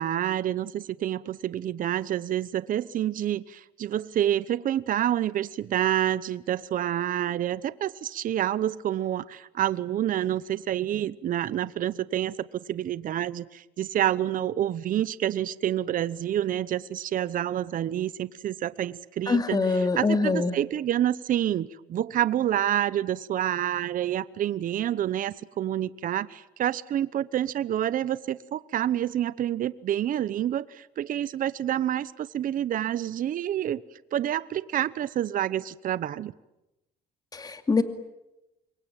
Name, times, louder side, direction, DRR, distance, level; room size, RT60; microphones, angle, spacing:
voice 1, 0.0-19.6 20.0-33.8 34.1-36.3, right 11 dB, 55° right, 0.9 m, -28 dB
voice 2, 19.3-20.6 37.3-37.8, left 4 dB, 25° left, 2.5 m, -24 dB
27.0 x 23.0 x 9.1 m
cardioid pair, 110°, 17 cm